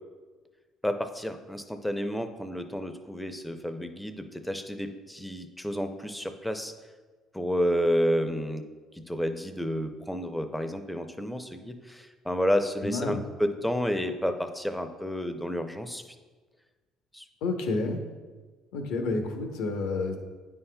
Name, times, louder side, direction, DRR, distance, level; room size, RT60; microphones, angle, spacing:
voice 1, 0.8-6.7 7.3-8.7 8.9-16.0 17.1-17.2, equal, 5° left, 7 dB, 0.5 m, -30 dB
voice 2, 12.8-13.2 17.4-18.1 18.7-20.2, left 3 dB, 85° left, 4 dB, 0.8 m, -29 dB
9.3 x 5.6 x 2.2 m, 1.4 s
cardioid pair, 105°, 0 cm